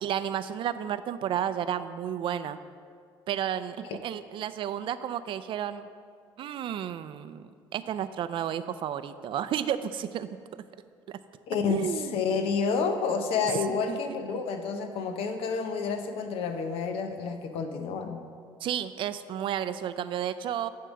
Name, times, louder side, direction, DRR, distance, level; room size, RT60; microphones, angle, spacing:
voice 1, 0.0-2.6 3.3-5.9 6.4-10.3 11.1-11.2 11.7-12.2 13.7-14.0 18.6-20.7, right 10 dB, 60° right, 13 dB, 0.4 m, -32 dB
voice 2, 11.5-18.2, left 5 dB, 75° left, 7 dB, 0.8 m, -29 dB
9.3 x 3.7 x 6.3 m, 2.2 s
supercardioid pair, 85°, 10 cm